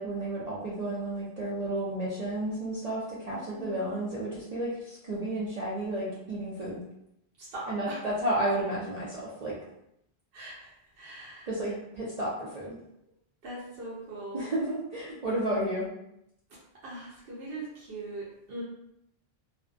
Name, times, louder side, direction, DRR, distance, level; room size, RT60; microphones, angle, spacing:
voice 1, 0.0-6.8 7.7-9.5 11.5-12.8 14.3-15.9, right 1 dB, 50° right, -7 dB, 0.5 m, -32 dB
voice 2, 3.3-3.9 7.4-8.0 10.3-11.5 13.4-14.5 16.8-18.6, right 2 dB, 70° right, -6 dB, 0.8 m, -41 dB
2.4 x 2.1 x 2.4 m, 0.78 s
omnidirectional pair, 1.1 m